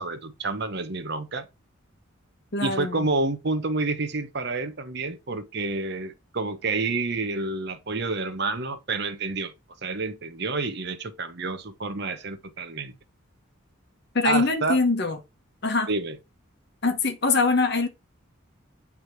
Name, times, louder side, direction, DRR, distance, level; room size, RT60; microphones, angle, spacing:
voice 1, 0.0-1.5 2.6-9.5 9.8-12.9 14.2-14.8 15.9-16.2, right 3 dB, 50° right, 0.9 m, -29 dB
voice 2, 2.5-3.1 14.1-15.2 15.6-15.9 16.8-17.9, left 3 dB, 50° left, 1.0 m, -23 dB
8.2 x 3.5 x 4.5 m
head